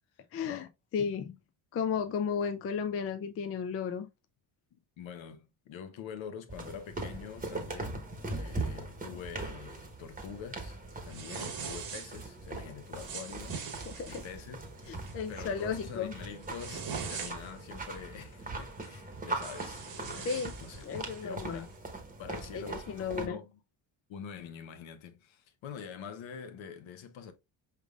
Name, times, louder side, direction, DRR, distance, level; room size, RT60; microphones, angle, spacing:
voice 1, 0.3-0.7 0.9-1.4 1.7-4.1 13.9-14.2 14.9-16.1 20.3-20.5 20.8-21.6 22.3-23.4, left 6 dB, 30° left, 0.4 m, -34 dB
voice 2, 4.7-14.7 15.3-20.8 21.2-21.8 22.2-23.6 24.1-27.3, left 7 dB, 65° left, 1.0 m, -45 dB
sound 1, 6.5-23.3, right 2 dB, 15° right, 1.1 m, -41 dB
sound 2, 11.1-12.3 12.9-14.3 14.8-15.1 15.6-15.8 16.2-17.6 18.8-18.9 19.3-21.2, right 6 dB, 45° right, 1.2 m, -42 dB
5.0 x 3.6 x 2.3 m
cardioid pair, 110°, 50 cm